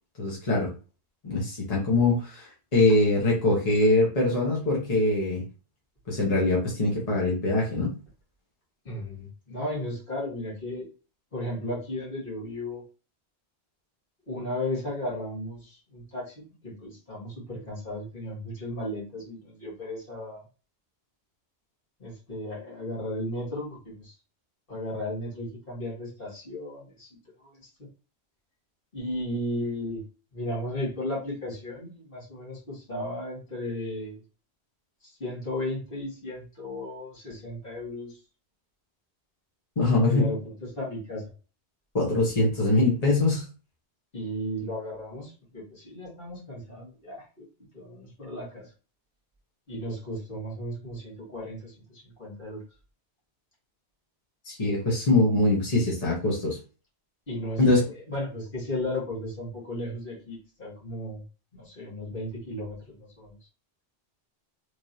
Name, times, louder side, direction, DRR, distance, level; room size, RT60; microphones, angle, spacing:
voice 1, 0.2-0.7 1.2-5.4 6.1-7.9 39.8-40.3 41.9-43.4 54.4-56.6 57.6-57.8, left 2 dB, 35° left, -4 dB, 1.2 m, -23 dB
voice 2, 8.9-10.9 11.3-12.8 14.3-20.4 22.0-24.1 24.7-27.1 27.4-27.7 28.9-30.0 30.3-34.2 35.0-38.2 40.0-41.2 44.1-47.5 47.7-48.7 49.7-52.6 57.3-61.2 61.5-63.3, left 1 dB, 55° left, -6 dB, 1.9 m, -35 dB
3.4 x 3.2 x 2.7 m, 0.34 s
omnidirectional pair, 1.1 m